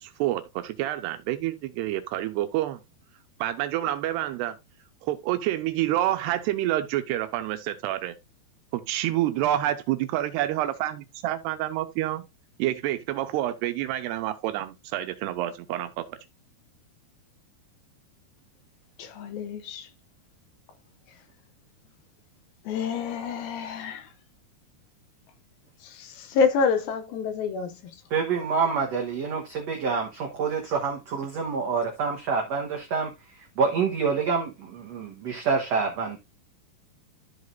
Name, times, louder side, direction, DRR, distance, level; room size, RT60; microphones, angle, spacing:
voice 1, 0.0-2.8 3.4-4.6 5.0-8.2 8.7-12.2 12.6-16.2, right 13 dB, 85° right, 2.8 m, -28 dB
voice 2, 19.0-19.9 21.1-21.2 22.6-24.1 25.8-28.0, left 5 dB, 75° left, 2.2 m, -28 dB
voice 3, 28.1-33.1 33.6-36.2, right 5 dB, 70° right, 1.6 m, -27 dB
13.5 x 4.9 x 2.5 m
omnidirectional pair, 4.8 m